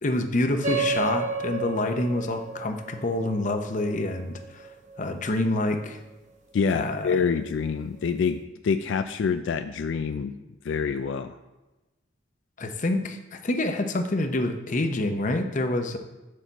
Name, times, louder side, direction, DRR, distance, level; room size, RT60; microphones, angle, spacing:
voice 1, 0.0-4.4 5.0-6.0 6.7-7.2 12.6-16.0, left 2 dB, 40° left, 6 dB, 0.7 m, -27 dB
sound 1, 0.6-5.6, right 4 dB, 40° right, 0.9 m, -32 dB
voice 2, 6.5-10.3 10.6-11.4, left 5 dB, 80° left, 9 dB, 0.4 m, -26 dB
7.3 x 6.6 x 4.0 m, 1.1 s
head